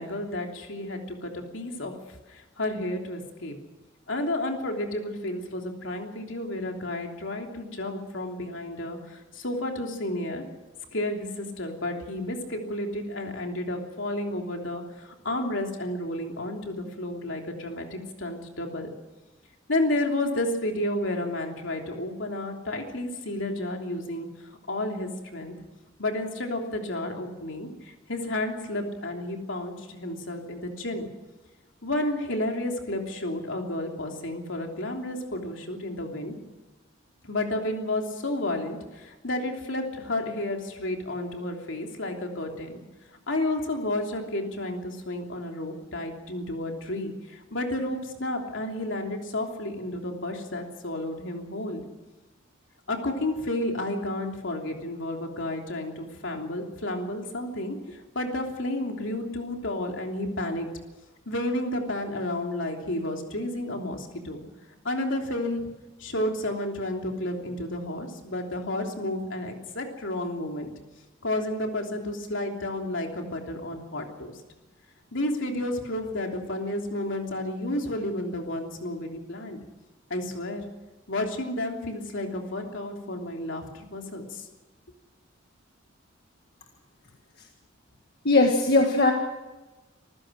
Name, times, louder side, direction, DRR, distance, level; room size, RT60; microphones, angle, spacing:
voice 1, 0.0-1.9 2.3-3.5 4.1-10.4 10.9-18.9 19.7-24.3 24.7-25.5 26.0-31.1 31.8-36.3 37.2-42.8 43.3-51.8 52.9-60.7 61.3-64.4 64.8-65.7 66.0-70.7 71.2-74.4 75.1-79.6 80.1-80.6 81.1-84.5, left 1 dB, 65° left, 2 dB, 3.2 m, -31 dB
voice 2, 88.2-89.1, left 2 dB, 50° left, 2 dB, 1.8 m, -19 dB
26.5 x 15.5 x 6.4 m, 1.1 s
head